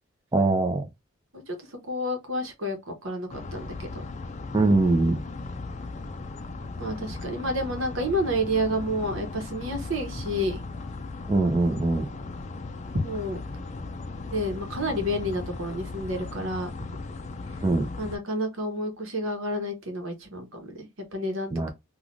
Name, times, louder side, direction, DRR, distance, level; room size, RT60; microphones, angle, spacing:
voice 1, 0.3-0.9 4.5-5.2 11.3-12.1 17.6-17.9 21.5-21.7, right 2 dB, 20° right, 0.6 m, -22 dB
voice 2, 1.9-3.9 6.8-10.6 13.0-13.4 14.3-16.7 18.0-21.7, equal, 70° right, 1.1 m, -30 dB
sound 1, 3.3-18.2, left 3 dB, 35° left, 0.4 m, -37 dB
3.2 x 2.5 x 2.6 m
head